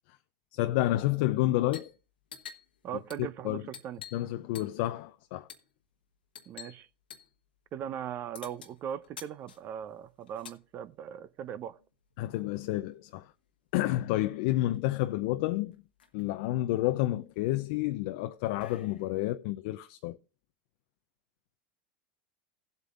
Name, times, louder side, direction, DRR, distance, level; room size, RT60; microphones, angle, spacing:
voice 1, 0.5-1.9 3.4-3.6 4.1-5.5 12.2-13.3 13.7-15.7 16.1-20.2, left 16 dB, 65° left, 0.5 m, -29 dB
sound 1, 1.6-2.0 2.2-4.3 4.5-4.9 5.5-5.7 6.3-6.8 7.1-7.3 8.3-10.6 11.7-12.7 14.0-14.1 14.3-14.9 15.4-15.5 15.7-16.2 16.8-19.2, left 7 dB, 90° left, 1.3 m, -50 dB
voice 2, 2.8-4.0 6.5-6.9 7.7-11.8, right 9 dB, 45° right, 0.7 m, -39 dB
17.0 x 8.1 x 2.5 m
hypercardioid pair, 90°, 5 cm